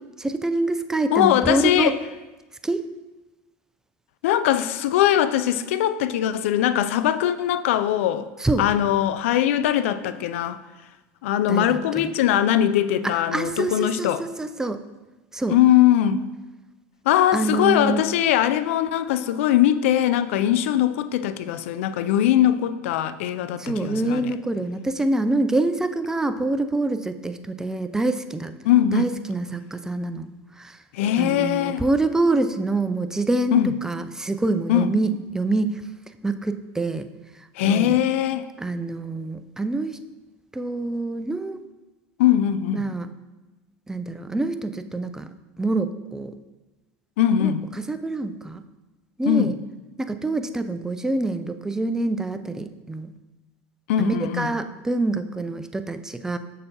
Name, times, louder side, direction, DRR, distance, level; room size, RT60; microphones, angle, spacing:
voice 1, 0.2-1.9 2.6-2.8 8.4-8.6 11.5-12.1 13.0-14.8 15.3-15.6 17.3-18.0 23.6-28.5 28.9-30.3 30.6-30.8 31.2-35.8 36.2-37.1 37.6-38.0 38.6-40.0 40.5-41.6 42.7-43.1 43.9-45.3 45.6-46.3 47.4-47.5 47.8-48.6 49.2-49.6 50.0-53.1 54.0-56.4, right 2 dB, 10° right, 10 dB, 0.4 m, -26 dB
voice 2, 1.1-2.0 4.2-8.3 8.6-10.6 11.2-14.2 15.5-16.3 17.1-24.3 28.6-29.1 30.9-31.8 33.5-33.7 34.7-34.9 37.6-38.5 42.2-42.9 47.2-47.6 49.3-49.5 53.9-54.5, left 11 dB, 80° left, 12 dB, 0.4 m, -21 dB
6.5 x 6.4 x 2.9 m, 1.1 s
hypercardioid pair, 95°, 7 cm